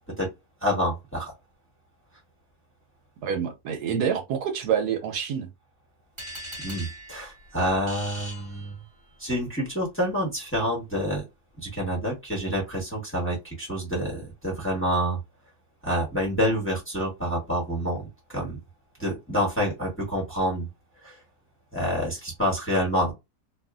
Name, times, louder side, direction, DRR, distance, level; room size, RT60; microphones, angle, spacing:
voice 1, 0.6-1.3 6.6-8.7 9.2-11.2 11.6-15.2 15.8-18.6 19.0-20.7 21.0-21.1 21.7-23.1, equal, 10° left, 1.0 m, -27 dB
voice 2, 3.2-5.5, right 8 dB, 75° right, 1.1 m, -27 dB
sound 1, 6.2-9.2, right 1 dB, 20° right, 1.5 m, -41 dB
2.9 x 2.4 x 2.4 m
omnidirectional pair, 1.7 m